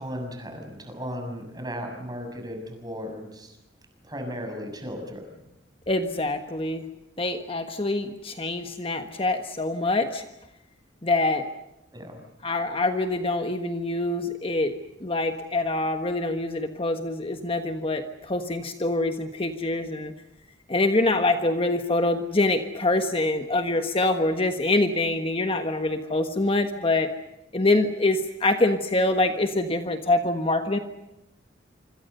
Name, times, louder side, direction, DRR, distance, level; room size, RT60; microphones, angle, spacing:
voice 1, 0.0-3.6 4.0-5.3 11.9-12.2, equal, 20° right, 4 dB, 6.6 m, -36 dB
voice 2, 5.9-6.8 7.2-10.3 11.0-11.4 12.4-14.7 15.0-20.1 20.7-27.1 27.5-30.8, left 2 dB, 30° left, 6 dB, 1.4 m, -25 dB
26.0 x 26.0 x 6.8 m, 0.89 s
head